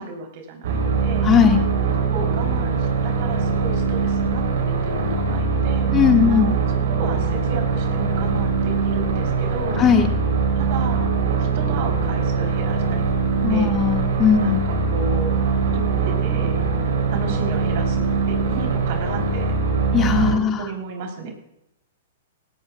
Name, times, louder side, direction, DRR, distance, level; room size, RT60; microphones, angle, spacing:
voice 1, 0.0-1.6 2.1-5.9 6.3-6.5 6.9-9.8 10.6-13.0 13.5-13.8 14.4-15.4 15.7-16.7 17.1-19.5 20.3-21.3, right 4 dB, 55° right, 3 dB, 3.5 m, -33 dB
sound 1, 0.6-20.4, right 5 dB, 70° right, 3.5 m, -22 dB
voice 2, 1.2-1.6 5.9-6.6 9.8-10.1 13.4-14.6 19.9-20.7, left 7 dB, 25° left, 4 dB, 1.8 m, -18 dB
17.5 x 14.5 x 2.3 m, 0.80 s
hypercardioid pair, 130°, 0 cm